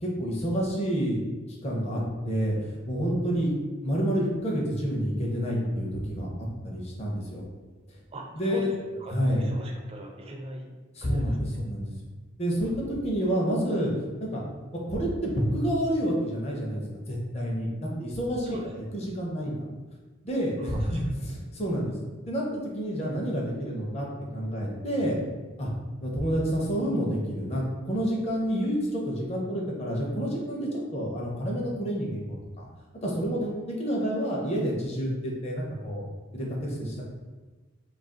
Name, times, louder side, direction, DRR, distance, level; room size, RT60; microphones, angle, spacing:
voice 1, 0.0-1.2 1.6-3.5 3.8-7.4 7.9-8.0 8.3-8.7 9.1-9.5 10.9-11.9 12.4-14.4 14.9-19.7 20.2-21.9 22.3-24.1 24.3-25.2 25.6-25.7 26.0-32.6 33.0-36.1 36.3-37.0, equal, 30° left, -2 dB, 0.6 m, -29 dB
voice 2, 8.1-10.7 11.0-11.4 18.5-18.7 20.6-21.0, right 1 dB, 30° right, 0 dB, 0.4 m, -40 dB
2.4 x 2.3 x 3.7 m, 1.3 s
head